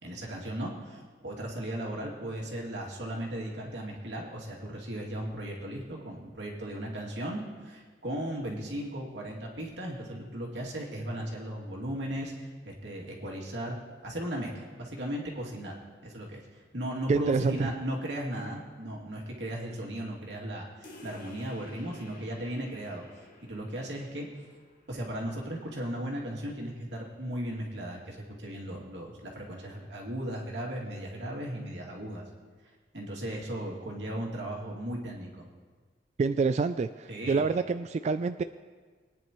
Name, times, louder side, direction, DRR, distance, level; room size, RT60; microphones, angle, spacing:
voice 1, 0.0-13.7 14.0-23.0 23.5-24.3 24.9-32.2 32.9-35.5 37.1-37.5, right 1 dB, 90° right, -3 dB, 2.6 m, -36 dB
voice 2, 17.1-17.7 36.2-38.4, right 4 dB, 40° right, 10 dB, 0.3 m, -27 dB
sound 1, 20.8-25.9, left 1 dB, 50° left, 2.3 m, -53 dB
22.5 x 10.0 x 3.1 m, 1.5 s
head